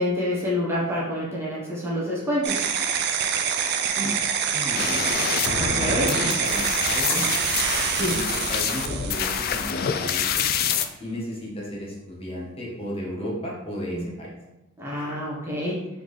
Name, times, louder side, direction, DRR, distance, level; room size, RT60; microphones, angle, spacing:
voice 1, 0.0-2.7 5.6-6.1 7.1-7.3 7.9-8.2 13.9-14.1 14.8-15.9, left 1 dB, 15° right, -7 dB, 1.0 m, -27 dB
sound 1, 2.4-9.9, right 7 dB, 55° right, 0.4 m, -26 dB
voice 2, 4.5-5.1 5.7-7.4 8.0-8.2 8.5-10.4 11.0-14.3, equal, 30° left, -5 dB, 1.0 m, -34 dB
sound 2, 4.7-10.8, left 7 dB, 50° left, 0.3 m, -27 dB
4.0 x 3.6 x 3.2 m, 0.97 s
head